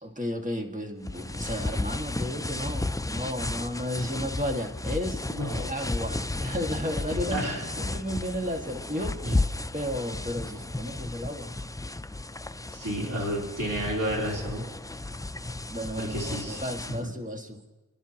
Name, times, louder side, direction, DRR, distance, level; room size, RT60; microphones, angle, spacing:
voice 1, 0.0-5.3 5.6-9.5 9.7-11.5 15.7-17.6, equal, 25° right, 1 dB, 2.0 m, -33 dB
sound 1, 1.0-17.0, left 2 dB, 10° left, 0.4 m, -33 dB
voice 2, 5.3-5.7 7.3-7.7 9.2-9.4 12.7-14.7 16.0-17.0, right 1 dB, 80° right, -3 dB, 3.5 m, -31 dB
29.5 x 11.0 x 3.0 m, 1.2 s
wide cardioid pair, 50°, 32 cm